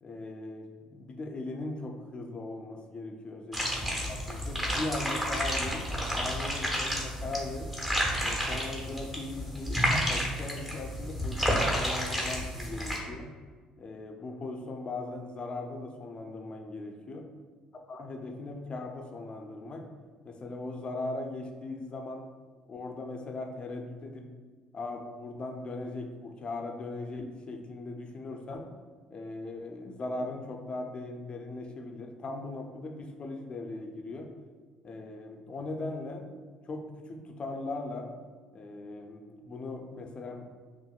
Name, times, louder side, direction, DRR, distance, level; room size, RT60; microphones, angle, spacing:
voice 1, 0.0-7.7 8.2-13.3 13.8-17.3 17.9-19.9 20.2-22.3 22.7-24.3 24.7-28.7 29.1-34.3 34.8-36.3 36.6-38.2 38.5-40.5, left 2 dB, 40° left, 4 dB, 0.5 m, -39 dB
sound 1, 3.5-13.0, equal, 15° right, 1.1 m, -31 dB
5.6 x 2.5 x 2.3 m, 1.5 s
supercardioid pair, 70°, 3 cm